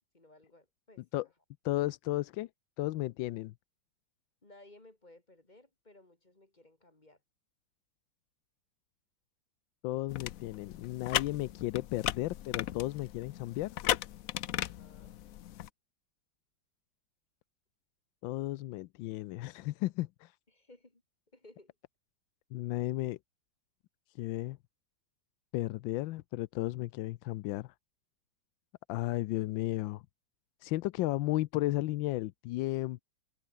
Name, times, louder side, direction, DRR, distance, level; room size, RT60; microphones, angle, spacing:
voice 1, 0.1-1.1 4.4-7.2 14.5-15.2 20.5-21.0 21.3-21.7, left 2 dB, 25° left, 2.7 m, -59 dB
voice 2, 1.6-2.5 2.8-3.5 9.8-13.8 18.2-20.4 22.5-23.2 24.1-24.6 25.5-27.7 28.9-30.0 30.6-33.0, left 17 dB, 90° left, 1.3 m, -34 dB
sound 1, 10.1-15.7, left 12 dB, 65° left, 0.9 m, -36 dB
omnidirectional pair, 2.0 m